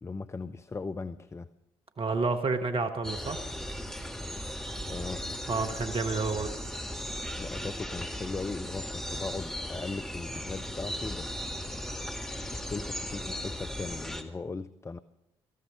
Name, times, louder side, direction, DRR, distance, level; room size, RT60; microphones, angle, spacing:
voice 1, 0.0-1.5 4.9-5.2 7.4-11.9 12.5-15.0, left 3 dB, 20° left, 11 dB, 0.5 m, -38 dB
voice 2, 2.0-3.4 5.5-6.5, right 4 dB, 40° right, 7 dB, 1.2 m, -29 dB
sound 1, 3.0-14.2, equal, 5° left, 1.8 m, -37 dB
18.0 x 14.5 x 5.1 m, 0.88 s
figure-of-eight pair, 45°, 14 cm